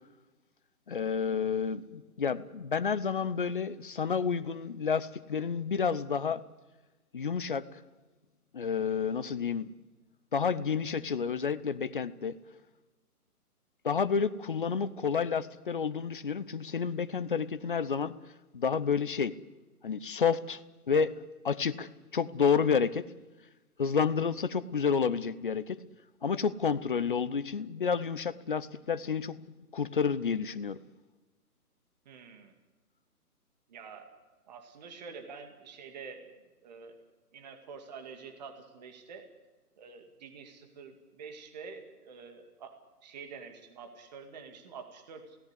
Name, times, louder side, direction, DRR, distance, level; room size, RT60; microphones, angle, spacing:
voice 1, 0.9-6.4 7.1-7.7 8.5-9.7 10.3-12.3 13.8-18.2 18.5-19.4 19.8-21.2 21.4-23.1 23.8-25.8 26.2-29.4 29.7-30.8, left 6 dB, 35° left, 0.9 m, -30 dB
voice 2, 32.1-32.5 33.7-34.1 34.5-36.3 36.6-37.0 37.3-39.3 39.8-42.7 43.0-45.4, right 5 dB, 25° right, 2.3 m, -47 dB
29.0 x 18.0 x 8.3 m
figure-of-eight pair, 145°, 46 cm